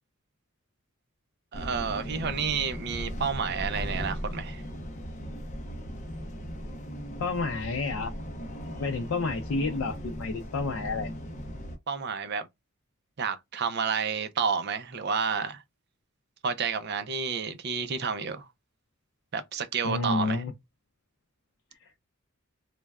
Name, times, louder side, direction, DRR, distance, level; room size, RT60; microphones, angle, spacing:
sound 1, 1.5-11.8, equal, 35° left, 0.5 m, -37 dB
voice 1, 1.5-4.6 11.9-12.5 13.2-15.6 16.4-18.5 19.3-20.4, right 6 dB, 50° right, 0.5 m, -30 dB
voice 2, 7.2-8.1 8.8-11.1 19.8-20.5, left 3 dB, 85° left, 0.4 m, -30 dB
3.2 x 2.2 x 2.2 m
head